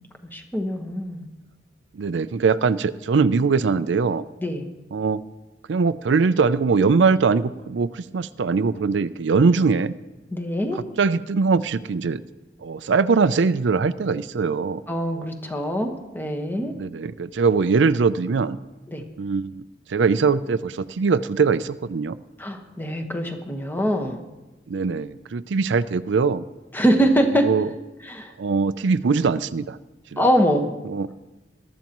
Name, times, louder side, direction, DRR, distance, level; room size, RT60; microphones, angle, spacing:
voice 1, 0.3-1.3 4.4-4.7 10.3-10.8 14.9-16.7 18.9-19.0 22.4-24.2 26.7-27.5 28.1-28.3 30.2-30.7, equal, 10° left, 3 dB, 1.3 m, -23 dB
voice 2, 1.9-4.2 4.9-5.2 5.7-9.9 10.7-12.2 12.6-14.8 16.8-18.6 19.2-19.6 19.9-22.2 24.7-26.4 27.4-27.7 28.4-29.8 30.1-30.2 30.8-31.1, right 4 dB, 70° right, 14 dB, 0.4 m, -21 dB
21.5 x 13.0 x 3.0 m, 1.1 s
head